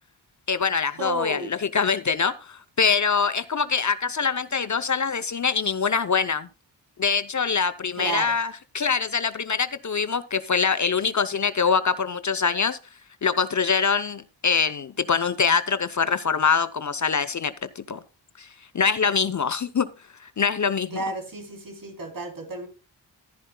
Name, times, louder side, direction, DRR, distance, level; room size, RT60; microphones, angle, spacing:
voice 1, 0.5-6.5 7.0-12.8 13.2-18.0 18.4-18.5 18.7-19.9 20.4-21.0, left 5 dB, 40° left, 13 dB, 0.7 m, -24 dB
voice 2, 1.0-1.5 8.0-8.3 20.9-22.7, right 3 dB, 50° right, 4 dB, 3.5 m, -32 dB
14.0 x 10.5 x 2.2 m, 0.30 s
cardioid pair, 60°, 44 cm